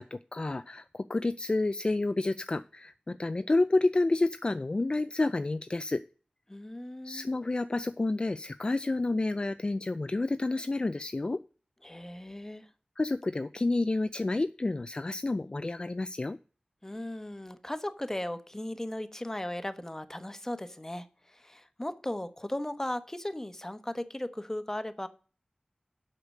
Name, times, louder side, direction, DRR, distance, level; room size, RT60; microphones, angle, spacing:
voice 1, 0.0-6.0 7.0-11.4 13.0-16.4, left 2 dB, 40° left, 12 dB, 0.4 m, -29 dB
voice 2, 6.5-7.3 11.8-12.7 16.8-25.1, left 1 dB, 15° left, 11 dB, 1.1 m, -37 dB
8.0 x 6.5 x 6.5 m, 0.38 s
wide cardioid pair, 75°, 3 cm